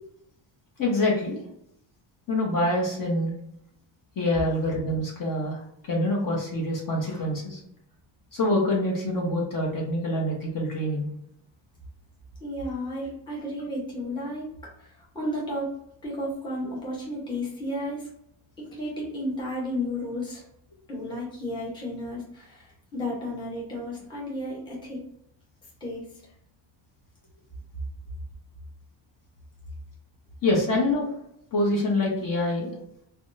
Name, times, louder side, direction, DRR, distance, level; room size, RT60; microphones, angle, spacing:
voice 1, 0.8-1.4 2.3-3.3 4.2-5.6 5.9-7.6 8.3-11.1 30.4-31.1 31.5-32.7, left 1 dB, 45° left, -2 dB, 0.9 m, -25 dB
voice 2, 12.4-14.5 14.8-15.7 16.0-18.1 18.7-20.4 20.9-25.0 25.8-26.0, left 1 dB, 10° left, -5 dB, 0.8 m, -33 dB
3.4 x 2.3 x 2.6 m, 0.74 s
cardioid pair, 165°, 48 cm